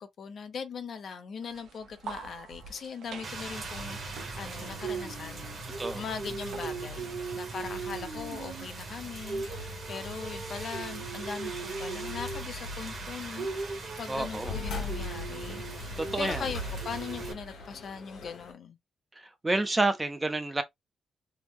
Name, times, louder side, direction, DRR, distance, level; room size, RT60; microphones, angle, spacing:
voice 1, 0.0-5.5 5.9-18.8, left 6 dB, 45° left, 0.5 m, -40 dB
sound 1, 1.4-9.1, right 5 dB, 80° right, 0.7 m, -48 dB
sound 2, 3.1-18.5, left 2 dB, 65° left, 1.0 m, -43 dB
Rain, 3.2-17.3, right 4 dB, 40° right, 1.0 m, -38 dB
voice 2, 14.1-14.5 16.0-16.4 19.4-20.6, right 2 dB, 15° right, 0.4 m, -28 dB
3.4 x 2.0 x 2.9 m
wide cardioid pair, 170°, 0 cm